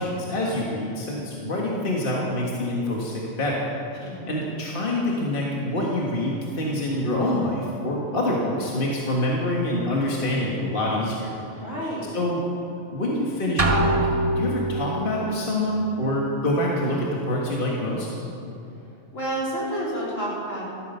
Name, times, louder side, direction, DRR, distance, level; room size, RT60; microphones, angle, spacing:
voice 1, 0.0-3.7 4.0-11.3 12.1-12.4 12.9-18.1, left 1 dB, 45° left, -3 dB, 1.8 m, -26 dB
voice 2, 4.0-4.4 11.6-12.1 18.8-20.6, right 1 dB, 70° left, -7 dB, 4.3 m, -30 dB
sound 1, 13.6-15.0, right 1 dB, 30° right, 1.0 m, -22 dB
15.0 x 12.5 x 5.5 m, 2.6 s
omnidirectional pair, 1.3 m